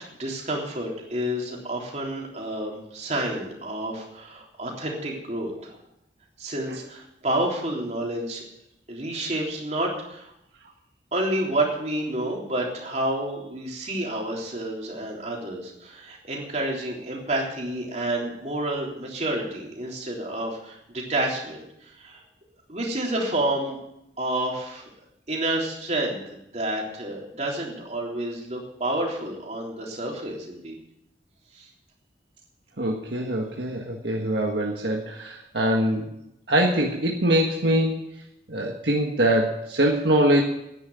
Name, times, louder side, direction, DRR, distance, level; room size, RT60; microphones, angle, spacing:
voice 1, 0.2-5.8 6.4-8.4 8.9-10.3 11.1-22.2 22.7-23.8 24.2-24.9 25.3-26.2 26.5-30.7 31.5-31.7, right 1 dB, 40° right, -1 dB, 3.5 m, -29 dB
voice 2, 32.8-36.2 36.5-38.0 38.5-40.4, right 1 dB, 65° right, 0 dB, 1.6 m, -23 dB
11.0 x 9.9 x 9.2 m, 0.81 s
head